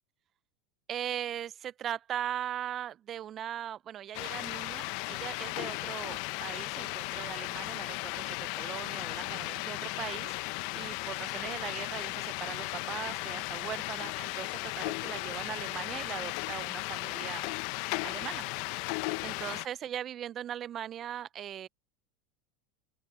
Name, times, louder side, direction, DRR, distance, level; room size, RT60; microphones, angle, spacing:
voice 1, 0.9-17.5 18.0-18.4 19.2-21.7, right 10 dB, 35° right, 0.5 m, -39 dB
sound 1, 4.1-19.7, left 24 dB, 60° left, 0.7 m, -36 dB
open air
hypercardioid pair, 105°, 0 cm